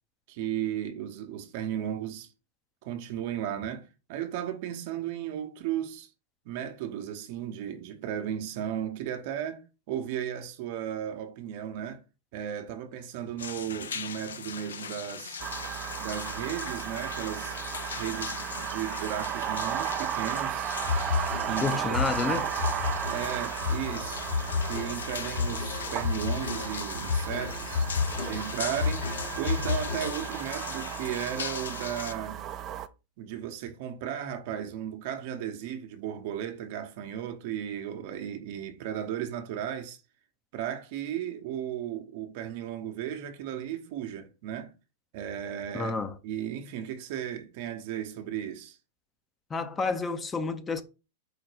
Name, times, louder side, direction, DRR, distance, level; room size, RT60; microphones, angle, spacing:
voice 1, 0.3-2.3 2.8-6.1 6.4-12.0 12.3-15.4 16.0-17.6 18.0-20.7 21.5-22.0 23.1-24.2 24.6-27.9 28.2-32.4 33.2-40.0 40.5-44.7 45.1-45.9 46.2-48.8, right 10 dB, 55° right, 0.7 m, -35 dB
sound 1, 13.4-32.1, left 7 dB, 85° left, 0.4 m, -40 dB
sound 2, 15.4-32.9, right 10 dB, 35° right, 0.4 m, -35 dB
sound 3, 20.8-30.4, left 5 dB, 65° left, 1.3 m, -32 dB
voice 2, 21.6-22.5 45.7-46.2 49.5-50.8, left 4 dB, 20° left, 0.5 m, -30 dB
4.8 x 2.2 x 4.8 m
hypercardioid pair, 110°, 0 cm